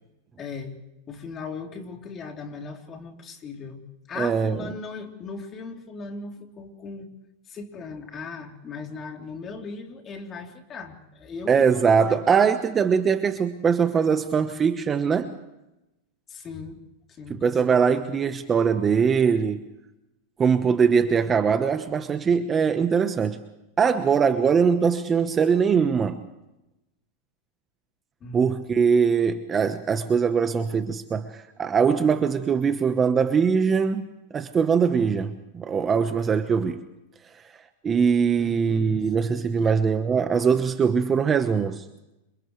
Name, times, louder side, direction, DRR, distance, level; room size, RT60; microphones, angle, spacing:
voice 1, 0.4-0.8 1.1-7.1 7.5-12.2 16.3-18.2 28.2-28.6 38.4-39.8, left 4 dB, 25° left, 2 dB, 3.4 m, -38 dB
voice 2, 4.2-4.6 11.5-15.4 17.3-19.7 20.4-23.4 23.8-26.3 28.3-34.1 34.3-36.8 37.8-41.8, right 6 dB, 20° right, 8 dB, 1.1 m, -22 dB
29.5 x 27.0 x 3.3 m, 0.94 s
supercardioid pair, 145°, 0 cm